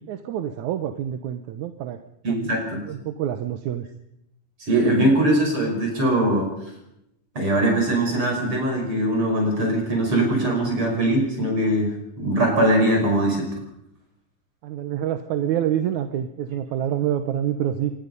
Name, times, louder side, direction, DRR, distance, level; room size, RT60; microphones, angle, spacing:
voice 1, 0.1-2.0 2.3-2.5 2.9-3.9 14.6-17.9, right 10 dB, 85° right, 8 dB, 2.4 m, -27 dB
voice 2, 2.2-2.8 4.7-6.5 7.3-13.5, right 1 dB, 45° right, 1 dB, 6.4 m, -21 dB
24.0 x 21.0 x 5.5 m, 0.82 s
omnidirectional pair, 3.3 m